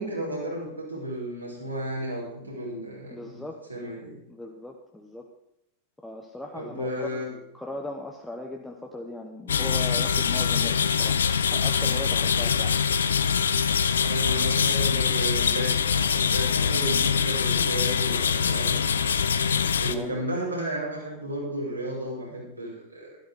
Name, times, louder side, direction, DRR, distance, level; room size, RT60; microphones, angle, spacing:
voice 1, 0.0-3.4 3.7-4.2 6.5-7.3 12.3-12.5 14.0-19.1 19.8-23.2, right 1 dB, 85° right, -4 dB, 5.7 m, -33 dB
voice 2, 3.1-3.6 4.3-5.2 6.0-11.2 11.5-12.8 19.9-20.1, left 1 dB, 5° left, 0 dB, 1.3 m, -38 dB
sound 1, 9.5-20.0, left 7 dB, 70° left, 0.7 m, -24 dB
13.5 x 12.0 x 5.1 m, 0.79 s
figure-of-eight pair, 90°, 0 cm